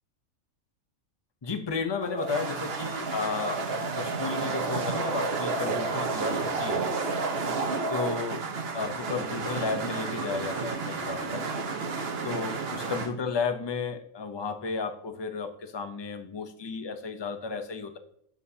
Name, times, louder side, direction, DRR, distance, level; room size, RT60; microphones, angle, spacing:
voice 1, 1.4-3.7 3.9-6.8 7.9-11.5 12.2-18.0, left 4 dB, 40° left, 8 dB, 0.3 m, -33 dB
sound 1, 2.0-13.1, right 4 dB, 50° right, 1.0 m, -31 dB
8.2 x 7.5 x 2.8 m, 0.71 s
omnidirectional pair, 1.5 m